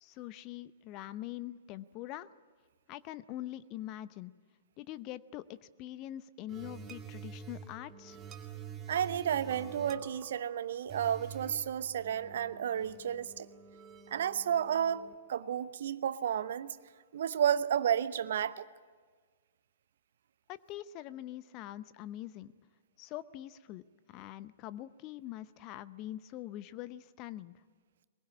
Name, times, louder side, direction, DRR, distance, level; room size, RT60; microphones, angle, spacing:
voice 1, 0.0-2.3 2.9-4.3 4.8-8.2 20.5-22.5 23.0-23.8 24.1-27.5, left 14 dB, 35° left, 16 dB, 0.8 m, -44 dB
sound 1, 6.5-15.1, right 7 dB, 20° right, 2.4 m, -48 dB
voice 2, 8.9-13.5 14.1-15.0 15.3-16.8 17.1-18.6, right 9 dB, 55° right, 15 dB, 0.9 m, -32 dB
23.0 x 21.5 x 8.6 m, 1.5 s
figure-of-eight pair, 105°, 0 cm